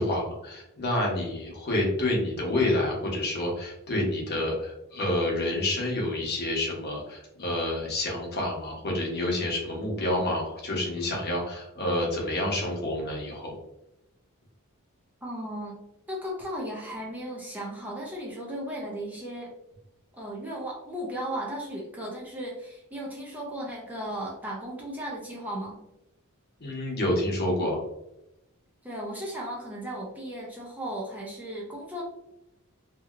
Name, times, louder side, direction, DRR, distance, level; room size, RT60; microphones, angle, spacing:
voice 1, 0.0-13.5 26.6-27.8, left 1 dB, 50° left, -2 dB, 0.9 m, -28 dB
voice 2, 15.2-15.7 16.1-19.5 20.2-25.8 28.8-32.0, equal, 5° right, -3 dB, 0.5 m, -36 dB
2.8 x 2.7 x 2.4 m, 0.88 s
head